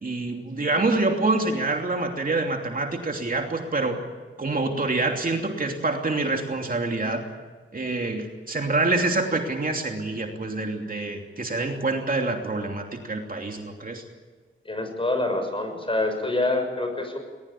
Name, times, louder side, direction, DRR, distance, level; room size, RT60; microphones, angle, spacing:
voice 1, 0.0-4.0 4.4-7.2 7.7-14.0, right 2 dB, 45° right, 2 dB, 2.9 m, -26 dB
voice 2, 14.6-17.2, left 2 dB, 25° left, 5 dB, 6.5 m, -26 dB
21.5 x 20.5 x 8.7 m, 1.4 s
wide cardioid pair, 80°, 21 cm